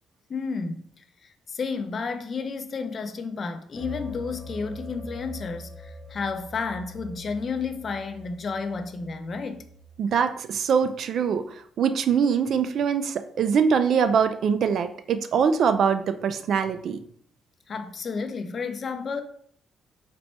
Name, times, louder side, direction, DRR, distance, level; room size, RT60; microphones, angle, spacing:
voice 1, 0.3-9.6 17.7-19.2, left 5 dB, 45° left, 0.5 m, -32 dB
sound 1, 3.8-10.3, equal, 25° right, 1.3 m, -43 dB
voice 2, 10.0-11.5 11.8-17.0, right 6 dB, 65° right, 0.3 m, -23 dB
4.2 x 2.2 x 4.2 m
cardioid pair, 90°, 0 cm